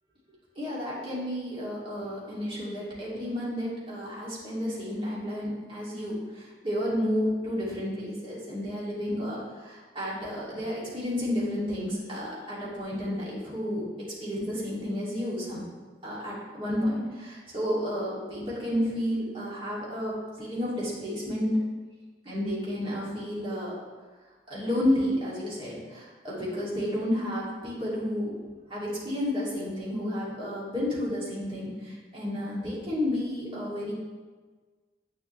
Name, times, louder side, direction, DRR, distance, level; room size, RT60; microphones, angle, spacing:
voice 1, 0.6-15.7 16.0-21.5 22.2-23.7 24.5-28.3 28.7-33.9, left 1 dB, 30° right, -7 dB, 2.5 m, -31 dB
8.1 x 7.3 x 3.2 m, 1.4 s
head